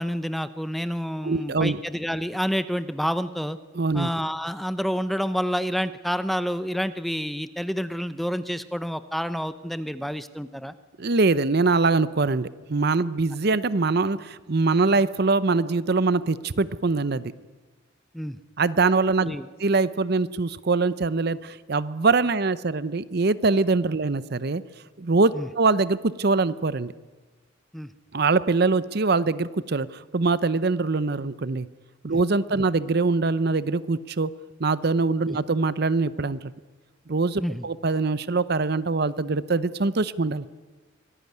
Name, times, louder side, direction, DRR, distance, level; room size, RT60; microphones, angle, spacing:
voice 1, 0.0-3.6 3.9-10.7 18.1-18.4 19.2-19.4 25.3-25.5 27.7-27.9 35.3-35.4 37.4-37.7, equal, ahead, 12 dB, 0.7 m, -28 dB
voice 2, 1.2-1.8 3.7-4.1 11.0-17.2 18.6-24.6 25.0-26.9 28.1-31.7 32.0-34.3 34.6-36.4 37.1-40.4, right 3 dB, 55° right, 16 dB, 0.7 m, -23 dB
25.0 x 17.0 x 9.6 m, 1.3 s
head